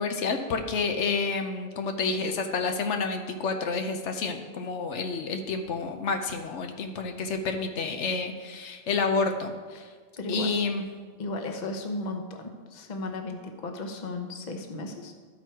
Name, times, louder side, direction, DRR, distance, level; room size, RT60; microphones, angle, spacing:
voice 1, 0.0-9.9 10.3-10.8, left 4 dB, 80° left, 5 dB, 1.0 m, -29 dB
voice 2, 10.2-10.6 11.2-12.4 12.7-15.1, left 2 dB, 40° left, 4 dB, 0.9 m, -35 dB
13.0 x 4.5 x 4.6 m, 1.5 s
omnidirectional pair, 1.2 m